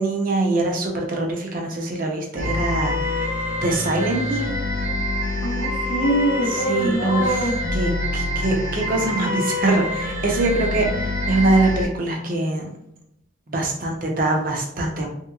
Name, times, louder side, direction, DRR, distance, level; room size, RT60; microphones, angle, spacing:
voice 1, 0.0-3.2 3.6-4.5 6.7-7.4 7.7-12.6 13.5-15.1, right 2 dB, 45° right, 1 dB, 0.6 m, -23 dB
sound 1, 2.4-11.9, left 1 dB, 90° right, 1.1 m, -26 dB
voice 2, 5.4-7.6, right 1 dB, 60° left, -5 dB, 0.7 m, -23 dB
3.2 x 2.9 x 2.3 m, 0.78 s
head